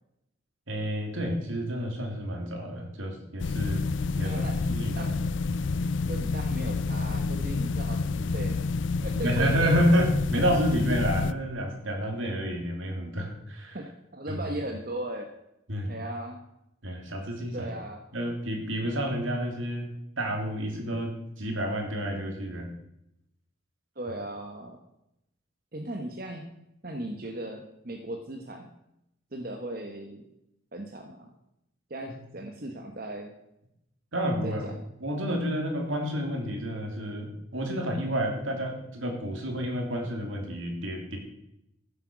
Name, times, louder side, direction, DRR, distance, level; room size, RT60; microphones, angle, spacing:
voice 1, 0.7-3.8 4.2-5.0 9.2-13.8 14.3-14.4 15.7-15.9 16.8-17.7 18.1-19.9 20.2-22.7 32.1-32.2 34.1-34.7 35.0-41.2, equal, 75° right, 2 dB, 3.1 m, -29 dB
sound 1, 3.4-11.3, left 4 dB, 65° left, 0.5 m, -29 dB
voice 2, 4.2-4.6 4.9-5.1 6.1-8.7 9.0-9.7 13.7-15.3 15.9-16.4 17.5-18.0 24.0-24.8 25.7-26.5 26.8-28.7 29.3-30.2 30.7-31.3 31.9-33.3 34.4-34.7, right 1 dB, 45° right, 3 dB, 1.2 m, -37 dB
14.5 x 8.0 x 6.2 m, 0.84 s
head